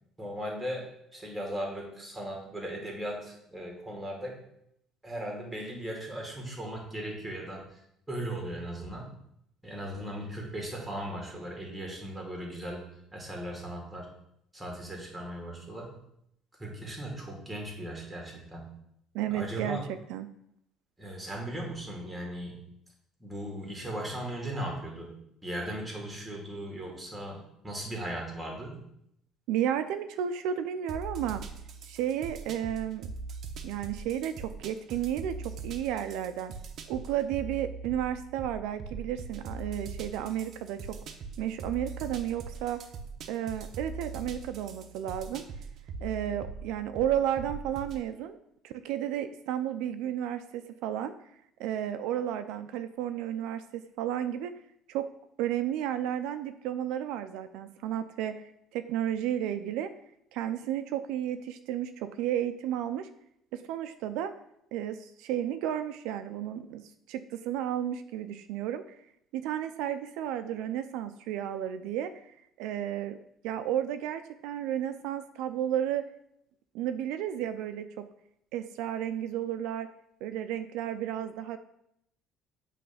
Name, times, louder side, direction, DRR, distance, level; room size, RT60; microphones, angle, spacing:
voice 1, 0.2-4.4 5.0-7.8 8.1-9.1 9.6-14.1 14.5-16.0 16.6-18.8 19.3-19.8 21.0-22.6 23.2-25.1 25.4-28.8, right 1 dB, 5° right, -1 dB, 1.8 m, -38 dB
voice 2, 19.1-20.3 29.5-31.4 31.9-33.1 33.6-36.5 36.9-41.0 41.4-42.8 43.3-45.4 46.0-48.4 48.6-51.1 51.6-54.5 54.9-55.1 55.4-59.9 60.3-63.1 63.5-64.3 64.7-69.0 69.3-72.3 72.6-73.2 73.4-76.1 76.7-78.1 78.5-79.9 80.2-81.6, right 10 dB, 80° right, 9 dB, 0.4 m, -32 dB
sound 1, 30.9-48.0, right 4 dB, 45° right, 0.7 m, -41 dB
7.6 x 3.3 x 5.6 m, 0.74 s
cardioid pair, 150°, 0 cm